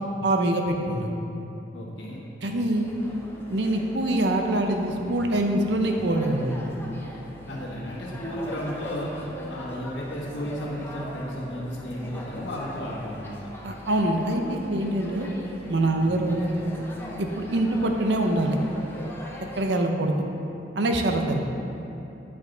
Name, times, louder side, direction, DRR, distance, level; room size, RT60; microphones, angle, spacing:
voice 1, 0.2-1.1 2.4-2.9 3.5-6.6 13.6-15.3 15.7-16.4 17.2-18.6 19.6-20.1 20.8-21.4, right 1 dB, 65° right, 3 dB, 0.7 m, -24 dB
voice 2, 1.7-2.2 7.5-13.4 15.9-16.2, equal, 80° left, -3 dB, 1.4 m, -34 dB
sound 1, 2.7-19.6, left 1 dB, 15° left, 0.7 m, -40 dB
9.6 x 5.2 x 3.9 m, 2.9 s
head